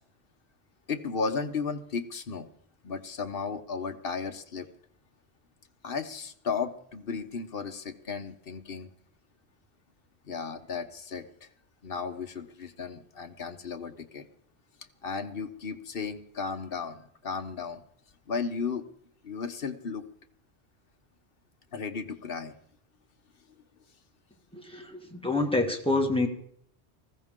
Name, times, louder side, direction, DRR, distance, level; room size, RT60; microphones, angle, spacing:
voice 1, 0.9-2.5 2.8-4.7 5.8-8.9 10.3-11.5 11.8-14.2 15.0-17.8 18.3-18.8 19.2-20.0 21.7-22.5, left 5 dB, 55° left, 8 dB, 1.2 m, -34 dB
voice 2, 24.5-26.3, left 2 dB, 5° left, 2 dB, 1.7 m, -27 dB
19.5 x 15.5 x 3.7 m, 0.65 s
omnidirectional pair, 1.2 m